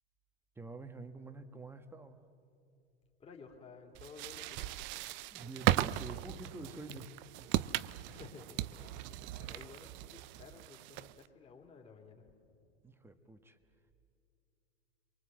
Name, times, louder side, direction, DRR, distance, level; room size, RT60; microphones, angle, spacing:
voice 1, 0.5-2.2 5.3-7.7 12.8-13.6, right 2 dB, 5° right, 8 dB, 1.4 m, -47 dB
voice 2, 3.2-4.8 8.1-12.3, left 5 dB, 20° left, 1 dB, 3.2 m, -54 dB
sound 1, 3.9-11.3, right 16 dB, 35° right, 0.5 m, -37 dB
29.5 x 23.5 x 7.8 m, 2.5 s
hypercardioid pair, 120°, 34 cm